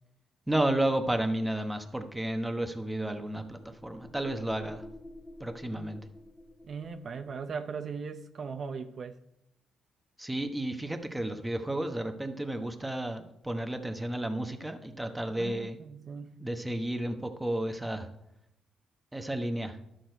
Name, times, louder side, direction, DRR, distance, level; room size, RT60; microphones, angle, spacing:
voice 1, 0.5-4.8 5.4-6.0 10.2-15.8 16.4-18.1 19.1-19.8, right 1 dB, 5° right, 6 dB, 1.1 m, -32 dB
sound 1, 3.1-7.5, left 1 dB, 10° left, 0.8 m, -50 dB
voice 2, 6.6-9.2 15.3-16.4, right 5 dB, 50° right, 7 dB, 0.7 m, -39 dB
11.5 x 6.3 x 4.5 m, 0.81 s
cardioid pair, 90°, 0 cm